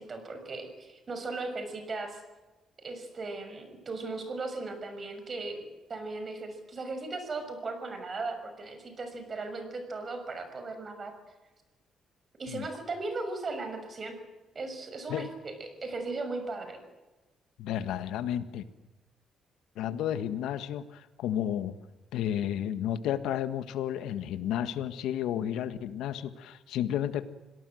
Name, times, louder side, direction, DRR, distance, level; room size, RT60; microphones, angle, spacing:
voice 1, 0.0-2.2 2.8-5.6 5.9-11.1 12.4-14.2 14.5-16.8, right 3 dB, 40° right, 7 dB, 6.3 m, -37 dB
voice 2, 17.6-18.6 19.7-21.8 22.1-27.3, left 10 dB, 85° left, 12 dB, 1.6 m, -32 dB
26.5 x 18.0 x 7.9 m, 1.2 s
cardioid pair, 90°, 0 cm